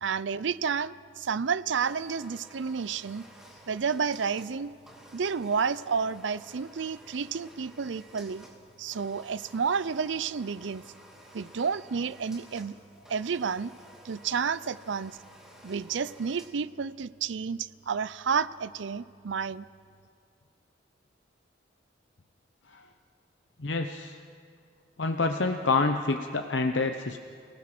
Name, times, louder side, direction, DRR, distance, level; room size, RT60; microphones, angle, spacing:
voice 1, 0.0-3.2 3.7-4.7 5.1-8.4 8.8-10.8 11.3-12.8 13.1-13.7 14.0-15.2 15.6-19.7, right 6 dB, 80° right, 18 dB, 0.5 m, -30 dB
sound 1, 1.7-16.5, equal, 5° right, 2.4 m, -53 dB
voice 2, 23.6-24.2 25.0-27.2, left 3 dB, 75° left, 5 dB, 0.9 m, -27 dB
28.5 x 18.5 x 6.1 m, 2.3 s
head